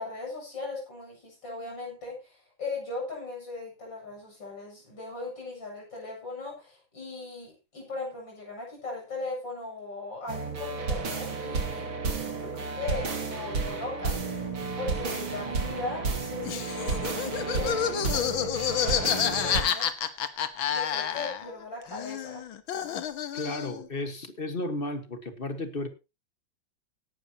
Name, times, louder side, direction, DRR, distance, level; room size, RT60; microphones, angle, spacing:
voice 1, 0.0-11.9 12.3-14.2 14.7-17.3 17.6-19.9 20.7-22.5, left 3 dB, 70° left, -1 dB, 8.4 m, -38 dB
sound 1, 10.3-19.6, right 4 dB, 85° right, 3.2 m, -32 dB
Laughter, 16.5-21.6 21.9-23.8, left 8 dB, 90° left, 2.0 m, -29 dB
voice 2, 23.3-25.9, left 2 dB, 30° left, 8 dB, 1.6 m, -33 dB
17.5 x 11.5 x 2.9 m, 0.27 s
omnidirectional pair, 2.1 m